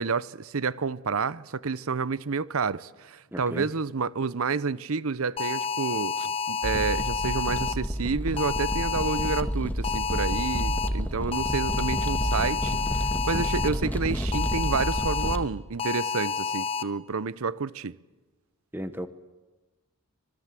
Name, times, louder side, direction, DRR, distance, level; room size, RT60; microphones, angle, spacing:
voice 1, 0.0-18.0, right 5 dB, 75° right, 0.7 m, -29 dB
voice 2, 3.3-3.7 18.7-19.1, equal, 10° right, 1.0 m, -34 dB
sound 1, 5.4-7.7 8.4-9.4 9.8-10.9 11.3-13.7 14.3-15.4 15.8-16.8, left 5 dB, 25° left, 0.9 m, -30 dB
sound 2, 6.6-15.5, equal, 10° left, 1.3 m, -30 dB
25.5 x 21.5 x 7.6 m
head